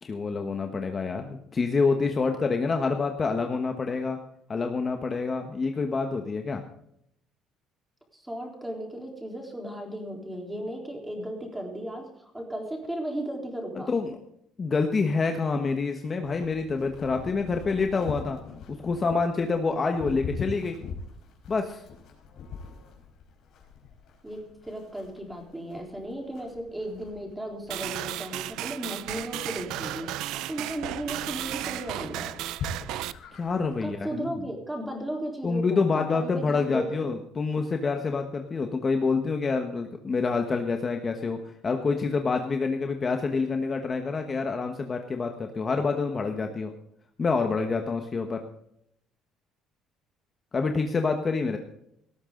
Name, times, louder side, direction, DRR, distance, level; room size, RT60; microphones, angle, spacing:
voice 1, 0.0-4.2 4.5-6.6 13.9-14.1 14.6-18.4 18.8-20.8 21.5-21.8 33.4-34.3 35.4-41.4 41.6-46.7 47.2-48.4 50.5-51.6, left 4 dB, 25° left, 5 dB, 1.2 m, -27 dB
voice 2, 8.1-13.9 24.2-32.4 33.8-37.1, right 1 dB, 5° right, 1 dB, 3.9 m, -35 dB
Livestock farm animals working animals, 16.2-33.9, left 5 dB, 55° left, 4.7 m, -43 dB
sound 1, 27.7-33.1, right 15 dB, 75° right, 0.6 m, -34 dB
18.0 x 14.0 x 3.9 m, 0.74 s
cardioid pair, 145°, 0 cm